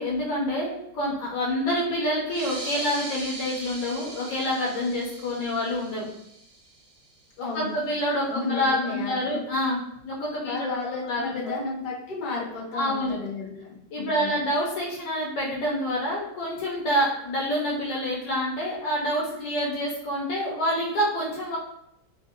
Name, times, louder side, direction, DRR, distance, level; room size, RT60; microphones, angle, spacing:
voice 1, 0.0-6.1 7.4-10.5 11.1-11.5 12.7-13.2 13.9-21.6, equal, 85° left, -5 dB, 1.5 m, -27 dB
sound 1, 2.2-7.3, right 2 dB, 75° right, 1.2 m, -39 dB
voice 2, 7.4-7.8 8.3-9.4 10.4-14.4, left 3 dB, 65° left, -4 dB, 1.6 m, -33 dB
3.4 x 2.5 x 2.7 m, 0.80 s
omnidirectional pair, 2.0 m